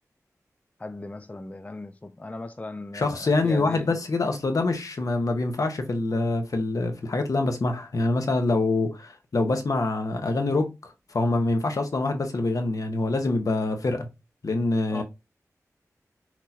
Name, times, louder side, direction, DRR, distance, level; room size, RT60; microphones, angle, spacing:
voice 1, 0.8-4.0 14.9-15.0, left 2 dB, 25° left, 0.4 m, -37 dB
voice 2, 2.9-14.1 14.4-15.0, left 2 dB, 70° left, 1.1 m, -25 dB
6.0 x 3.0 x 2.8 m
wide cardioid pair, 80°, 6 cm